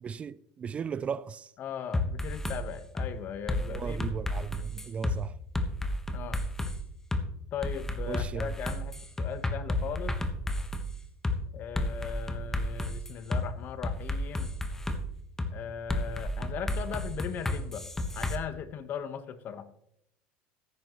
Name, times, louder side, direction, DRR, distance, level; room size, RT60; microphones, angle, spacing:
voice 1, 0.0-1.5 3.7-5.4 8.1-8.5, right 6 dB, 30° right, 0.4 m, -36 dB
voice 2, 1.6-4.0 6.1-6.4 7.5-8.9 9.2-10.2 11.5-14.5 15.5-17.9 18.1-19.7, left 8 dB, 45° left, 1.2 m, -38 dB
sound 1, 1.9-2.6 3.0-3.1 3.5-5.2 5.5-6.7 7.1-7.2 7.6-10.9 11.2-11.4 11.8-13.4 13.8-15.0 15.4-15.5 15.9-18.4, left 1 dB, 10° left, 1.2 m, -31 dB
14.5 x 11.0 x 3.1 m
supercardioid pair, 120°, 4 cm